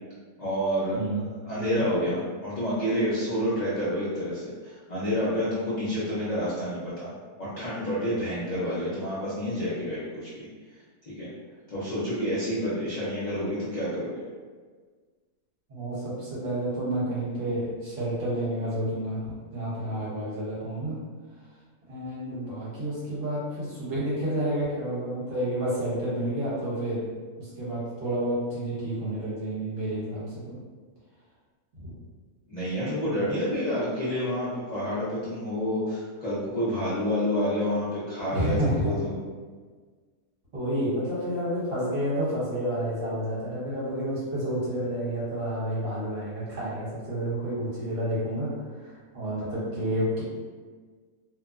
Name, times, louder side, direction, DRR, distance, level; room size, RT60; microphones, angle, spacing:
voice 1, 0.4-7.1 7.4-10.5 11.2-11.3 11.7-14.2 32.5-39.1, equal, 55° left, -11 dB, 0.4 m, -29 dB
voice 2, 15.7-19.2 19.5-21.0 21.9-27.1 27.4-30.6 31.8-31.9 33.1-33.2 38.3-38.9 40.5-48.5 48.8-50.2, right 1 dB, 55° right, -9 dB, 1.4 m, -30 dB
2.9 x 2.1 x 2.4 m, 1.5 s
omnidirectional pair, 1.7 m